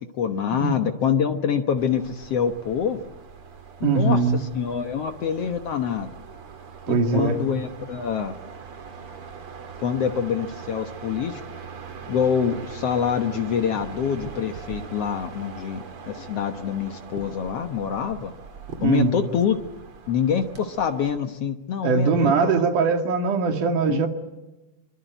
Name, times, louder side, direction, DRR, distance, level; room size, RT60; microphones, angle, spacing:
voice 1, 0.2-3.0 3.8-6.1 6.9-8.3 9.8-11.4 12.1-18.3 18.8-19.6 20.1-22.6 23.9-24.0, left 7 dB, 75° left, 7 dB, 1.4 m, -25 dB
sound 1, 1.8-21.2, right 5 dB, 40° right, 2.6 m, -41 dB
voice 2, 3.8-4.4 6.9-7.4 18.8-19.1 21.8-24.1, right 4 dB, 55° right, 5 dB, 3.4 m, -21 dB
24.0 x 24.0 x 9.2 m, 1.0 s
omnidirectional pair, 4.6 m